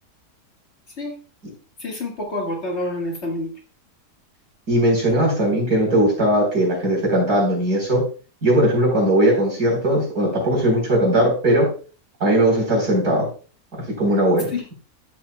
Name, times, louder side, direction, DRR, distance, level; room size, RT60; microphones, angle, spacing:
voice 1, 1.8-3.5 14.5-14.6, left 2 dB, 40° left, 0 dB, 1.9 m, -27 dB
voice 2, 4.7-8.0 8.4-11.7 12.2-13.3 14.0-14.5, right 1 dB, 65° right, -1 dB, 4.6 m, -18 dB
13.0 x 7.6 x 2.3 m, 0.36 s
omnidirectional pair, 1.8 m